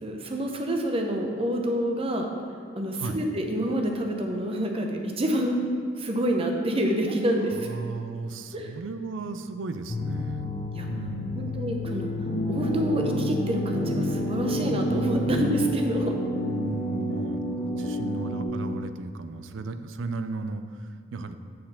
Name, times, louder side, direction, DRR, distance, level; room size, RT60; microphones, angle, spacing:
voice 1, 0.0-2.3 2.8-5.6 6.0-7.7 8.5-8.7 10.7-10.9 11.3-12.1 12.5-16.1, right 1 dB, 30° right, 2 dB, 0.7 m, -27 dB
voice 2, 7.5-10.6 10.9-11.6 16.3-21.4, right 3 dB, 85° right, 10 dB, 0.4 m, -35 dB
sound 1, 9.9-15.7, left 4 dB, 30° left, 0.6 m, -32 dB
sound 2, 12.2-18.4, equal, 75° left, 1.5 m, -29 dB
7.6 x 4.4 x 5.7 m, 2.2 s
head